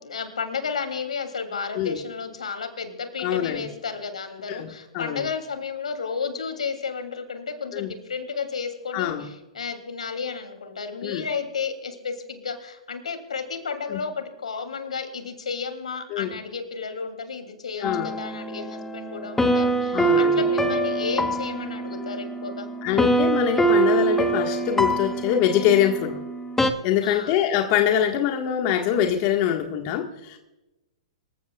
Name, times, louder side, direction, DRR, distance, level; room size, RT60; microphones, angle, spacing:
voice 1, 0.0-22.7 27.0-27.4, left 5 dB, 80° left, 6 dB, 2.9 m, -32 dB
voice 2, 3.2-3.7 4.5-5.3 7.7-7.9 8.9-9.3 11.0-11.3 13.9-14.0 16.1-16.4 17.8-18.1 19.9-20.4 22.8-26.2 26.8-30.4, left 10 dB, 40° left, 3 dB, 1.6 m, -24 dB
sound 1, 17.8-26.7, right 2 dB, 10° left, 1.3 m, -24 dB
26.0 x 15.0 x 2.4 m, 0.99 s
hypercardioid pair, 120°, 4 cm